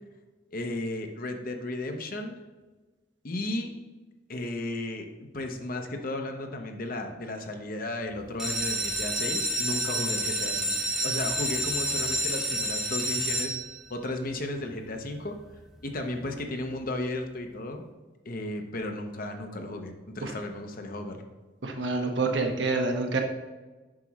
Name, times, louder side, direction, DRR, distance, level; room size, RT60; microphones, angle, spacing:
voice 1, 0.5-2.3 3.2-3.7 4.3-10.7 11.0-13.5 13.9-15.4 15.8-17.9 18.2-21.3, left 1 dB, 55° left, 4 dB, 0.9 m, -34 dB
sound 1, 8.3-14.0 14.6-15.1 15.5-15.6 15.9-16.0 16.4-16.5, right 1 dB, ahead, 1.0 m, -29 dB
voice 2, 21.6-23.2, right 3 dB, 85° right, 3 dB, 1.1 m, -27 dB
7.5 x 6.0 x 3.1 m, 1.2 s
head